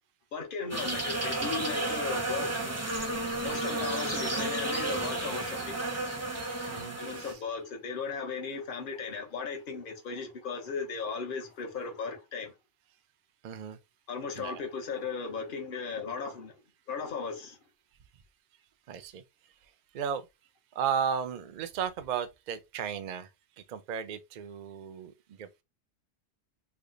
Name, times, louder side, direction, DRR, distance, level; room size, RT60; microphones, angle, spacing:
voice 1, 0.3-2.7 3.4-5.8 7.0-12.5 14.1-16.5 16.9-17.6, left 5 dB, 50° left, 1.0 m, -36 dB
sound 1, 0.7-7.3, right 2 dB, 15° right, 0.6 m, -32 dB
voice 2, 6.7-7.3 13.4-13.8 14.4-14.6 18.9-19.2 19.9-20.2 20.8-23.3 23.6-25.6, right 7 dB, 55° right, 0.5 m, -34 dB
3.3 x 2.1 x 3.8 m
omnidirectional pair, 1.2 m